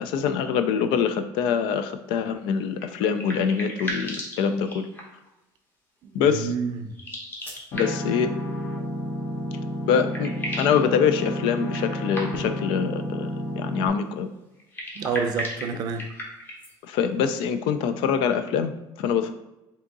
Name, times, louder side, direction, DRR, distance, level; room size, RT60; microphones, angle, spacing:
voice 1, 0.0-4.9 6.1-6.5 7.7-8.3 9.9-10.3 10.6-14.3 16.8-19.3, left 7 dB, 85° left, 9 dB, 0.4 m, -24 dB
sound 1, 2.8-5.3 6.9-8.2 9.5-9.6 9.9-10.8 11.7-12.6 14.6-16.7, equal, 25° left, 0.9 m, -36 dB
voice 2, 6.0-7.0 15.0-16.1, right 5 dB, 50° right, 7 dB, 0.4 m, -29 dB
sound 2, 7.7-13.9, equal, 55° left, 0.9 m, -31 dB
3.5 x 2.8 x 3.9 m, 0.96 s
cardioid pair, 145°, 8 cm